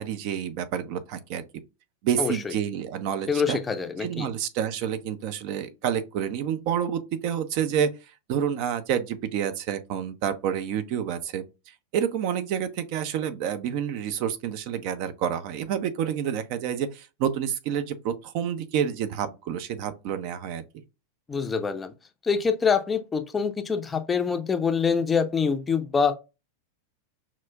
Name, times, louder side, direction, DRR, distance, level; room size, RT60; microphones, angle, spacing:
voice 1, 0.0-1.4 2.0-3.6 4.0-7.9 8.3-11.4 11.9-20.6, right 9 dB, 45° right, 0.5 m, -28 dB
voice 2, 2.2-2.5 3.3-4.3 21.3-21.9 22.2-26.1, left 5 dB, 15° left, 0.5 m, -25 dB
5.7 x 2.4 x 2.3 m
figure-of-eight pair, 90°, 0 cm